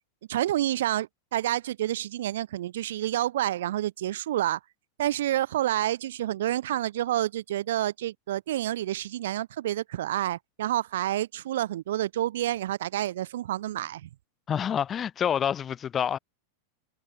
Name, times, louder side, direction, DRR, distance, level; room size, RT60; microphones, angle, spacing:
voice 1, 0.3-4.6 5.0-14.1, right 13 dB, 60° right, 0.7 m, -29 dB
voice 2, 14.5-16.2, left 8 dB, 25° left, 0.5 m, -27 dB
figure-of-eight pair, 90°, 0 cm